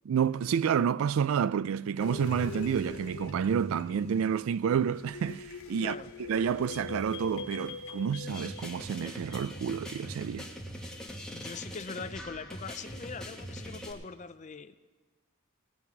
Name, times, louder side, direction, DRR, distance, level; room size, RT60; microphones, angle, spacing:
voice 1, 0.1-6.0 6.3-10.5, right 7 dB, 70° right, 0.3 m, -29 dB
sound 1, 2.0-10.0, left 2 dB, 85° left, 1.3 m, -42 dB
voice 2, 5.8-6.1 11.3-14.8, left 5 dB, 35° left, 0.5 m, -42 dB
sound 2, 8.3-13.9, equal, 5° left, 1.2 m, -42 dB
17.5 x 5.9 x 9.2 m
head